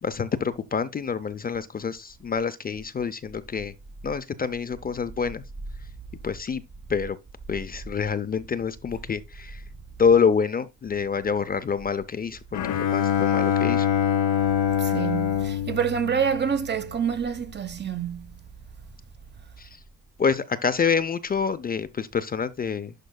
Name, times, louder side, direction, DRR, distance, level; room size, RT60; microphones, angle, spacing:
voice 1, 0.0-3.7 4.0-5.4 6.2-6.6 6.9-7.2 7.5-9.6 10.0-13.9 19.6-19.7 20.2-22.9, left 6 dB, 30° left, 0.5 m, -26 dB
Bowed string instrument, 12.5-16.9, left 9 dB, 80° left, 0.8 m, -24 dB
voice 2, 14.8-18.4, right 7 dB, 35° right, 1.0 m, -27 dB
11.5 x 4.5 x 2.2 m
cardioid pair, 90°, 30 cm